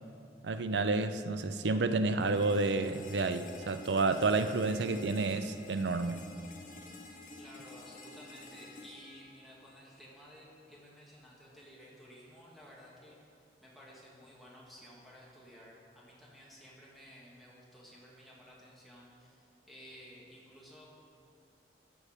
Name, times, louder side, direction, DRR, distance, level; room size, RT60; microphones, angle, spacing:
voice 1, 0.4-6.3, right 3 dB, 80° right, 10 dB, 0.5 m, -30 dB
sound 1, 2.2-10.2, left 2 dB, 50° left, 1.0 m, -51 dB
voice 2, 7.4-13.2 13.6-20.9, equal, ahead, -6 dB, 1.9 m, -54 dB
14.0 x 6.4 x 5.0 m, 2.5 s
head